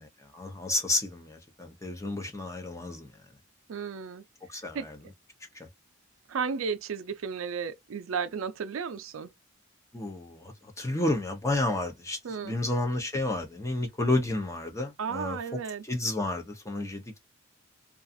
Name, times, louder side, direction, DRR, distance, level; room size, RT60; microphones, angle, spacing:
voice 1, 0.3-3.1 4.5-5.0 9.9-15.6 15.9-17.2, left 2 dB, 15° left, 0.6 m, -31 dB
voice 2, 3.7-4.2 4.7-4.9 6.3-9.3 12.2-12.6 15.0-15.9, right 6 dB, 75° right, 0.4 m, -33 dB
2.4 x 2.3 x 2.5 m
head